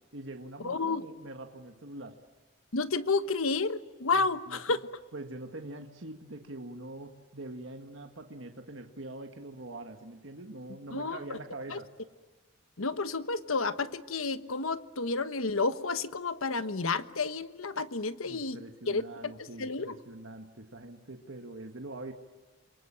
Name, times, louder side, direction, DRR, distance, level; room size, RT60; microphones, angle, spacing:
voice 1, 0.1-2.2 4.1-4.8 5.1-11.9 18.3-22.1, right 2 dB, 65° right, 5 dB, 1.6 m, -44 dB
voice 2, 0.6-1.0 2.7-4.8 10.9-11.2 11.7-11.8 12.8-18.6 18.9-20.0, left 3 dB, 85° left, 12 dB, 1.2 m, -31 dB
28.5 x 23.0 x 8.9 m, 1.4 s
head